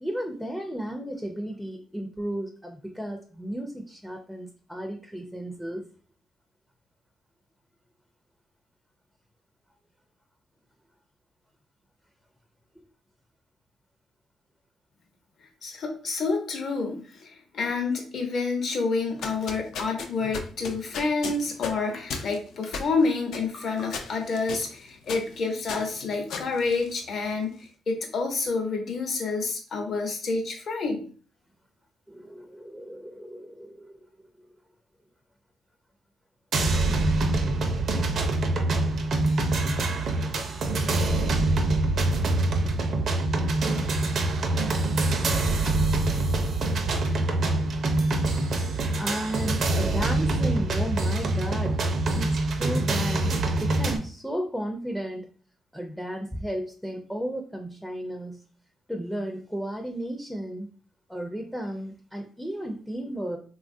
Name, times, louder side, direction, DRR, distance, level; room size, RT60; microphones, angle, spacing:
voice 1, 0.0-5.8 32.1-34.1 34.4-34.5 49.0-51.8 52.1-55.3 55.7-58.4 58.9-60.7 61.1-63.4, equal, 5° left, 3 dB, 0.4 m, -34 dB
voice 2, 15.6-31.0, left 4 dB, 60° left, 3 dB, 0.8 m, -28 dB
sound 1, 19.0-27.4, left 5 dB, 75° left, 0.4 m, -37 dB
sound 2, 36.5-54.0, right 2 dB, 60° right, 0.5 m, -25 dB
3.1 x 2.3 x 2.5 m, 0.41 s
cardioid pair, 90°, 0 cm